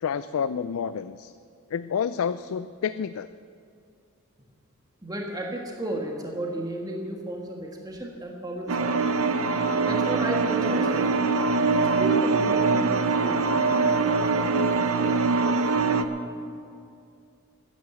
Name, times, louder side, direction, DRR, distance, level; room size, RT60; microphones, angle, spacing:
voice 1, 0.0-1.3 1.7-3.3, left 7 dB, 75° left, 13 dB, 0.3 m, -29 dB
voice 2, 5.0-9.0 9.9-11.2 11.8-13.5, right 1 dB, 20° right, 0 dB, 1.4 m, -33 dB
sound 1, 8.7-16.0, right 4 dB, 80° right, 0.8 m, -23 dB
14.0 x 10.0 x 6.8 m, 2.4 s
head